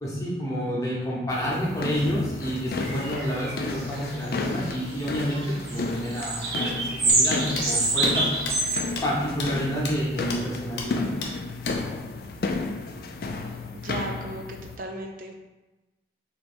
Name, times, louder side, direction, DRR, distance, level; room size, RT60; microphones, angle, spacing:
voice 1, 0.0-8.3 9.0-11.0, equal, 20° left, -5 dB, 0.9 m, -29 dB
sound 1, 1.3-14.8, left 3 dB, 55° left, 0.3 m, -33 dB
sound 2, 2.8-4.9 5.2-8.8, right 2 dB, 65° right, 0.8 m, -26 dB
sound 3, 7.1-7.2 7.6-7.7 8.0-8.1 8.5-8.6 9.0-9.1 9.4-9.5 9.9-10.0 10.3-10.4 10.8-10.9 11.2-11.3 11.6-11.8, left 4 dB, 85° left, 0.8 m, -33 dB
voice 2, 13.5-15.4, right 2 dB, 50° right, 3 dB, 0.3 m, -37 dB
3.2 x 3.0 x 4.3 m, 1.1 s
head